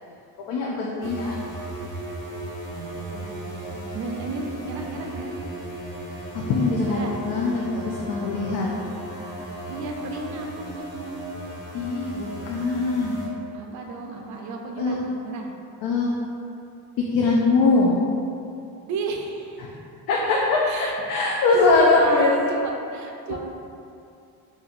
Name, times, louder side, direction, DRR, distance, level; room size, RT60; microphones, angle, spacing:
voice 1, 0.4-1.4 6.3-8.7 9.2-9.4 11.7-13.2 14.8-15.0 15.8-16.1 17.0-18.0 19.6-19.7 20.1-22.5 23.3-23.4, left 3 dB, 90° left, -3 dB, 0.5 m, -22 dB
sound 1, 1.0-13.3, right 1 dB, 60° left, 1.4 m, -36 dB
voice 2, 2.7-5.4 6.8-7.2 9.7-11.2 13.5-15.5 18.9-19.7 20.6-21.0 21.3-23.4, right 3 dB, 55° right, 1 dB, 0.5 m, -33 dB
4.1 x 2.7 x 2.5 m, 2.6 s
cardioid pair, 145°, 35 cm